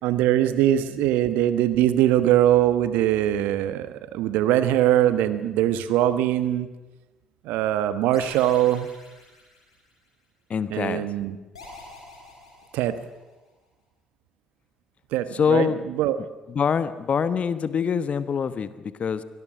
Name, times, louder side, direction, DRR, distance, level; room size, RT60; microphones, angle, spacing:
voice 1, 0.0-6.7 7.4-8.9 10.7-11.4 12.7-13.0 15.1-15.7 16.0-16.2, right 12 dB, 70° right, 12 dB, 1.3 m, -22 dB
sound 1, 8.1-10.1 11.5-13.3, left 3 dB, 90° left, 5.5 m, -46 dB
voice 2, 10.5-11.1 15.3-15.8 16.2-19.2, left 6 dB, 45° left, 14 dB, 1.2 m, -25 dB
23.5 x 18.5 x 6.3 m, 1.1 s
hypercardioid pair, 45°, 3 cm